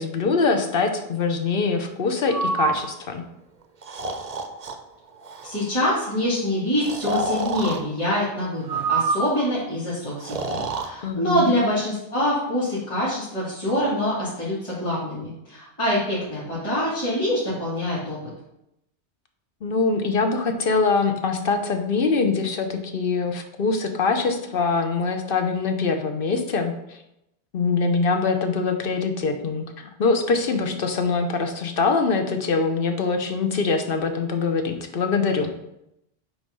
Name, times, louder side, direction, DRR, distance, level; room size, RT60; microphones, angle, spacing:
voice 1, 0.0-3.2 11.0-11.5 19.6-27.0 27.5-35.5, left 4 dB, 55° left, 6 dB, 1.0 m, -23 dB
Breathing, 2.3-2.8 3.8-4.8 5.2-5.6 6.8-7.8 8.6-9.5 10.2-10.9, right 3 dB, 40° right, 0.6 m, -27 dB
voice 2, 5.4-18.2, equal, 25° left, -10 dB, 2.9 m, -25 dB
8.6 x 3.2 x 5.4 m, 0.84 s
omnidirectional pair, 1.2 m